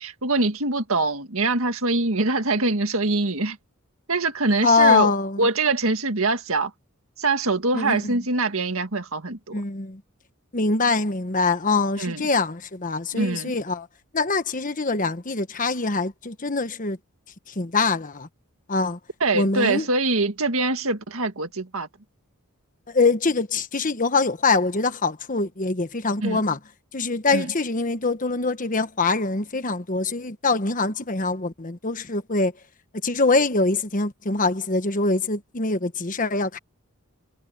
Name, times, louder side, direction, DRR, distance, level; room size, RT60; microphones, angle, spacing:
voice 1, 0.0-3.6 4.1-5.1 5.4-6.7 7.2-9.6 12.0-12.2 13.1-13.5 19.2-21.9 26.2-26.4 27.3-27.4, right 3 dB, 65° right, 2.0 m, -23 dB
voice 2, 4.6-5.5 7.7-8.2 9.5-10.0 10.5-13.9 14.1-17.0 17.5-18.3 18.7-19.0 19.3-19.9 22.9-26.6 26.9-32.5 33.0-36.6, left 3 dB, 35° left, 1.2 m, -23 dB
head